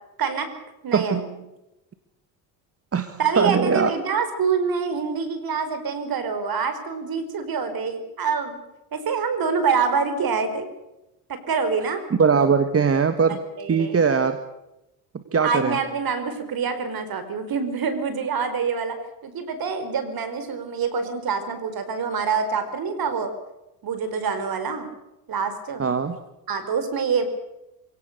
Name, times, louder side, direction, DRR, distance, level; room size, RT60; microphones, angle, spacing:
voice 1, 0.8-1.3 3.2-8.6 8.9-10.7 11.3-12.0 13.6-14.0 15.2-19.0 19.2-23.3 23.8-24.9 25.3-25.8 26.5-27.3, right 5 dB, 50° right, 9 dB, 4.9 m, -26 dB
voice 2, 2.9-3.9 12.2-13.4 13.7-14.4 15.3-15.8 25.8-26.2, right 6 dB, 30° right, 9 dB, 1.7 m, -20 dB
27.0 x 17.5 x 6.8 m, 0.94 s
supercardioid pair, 80°, 45 cm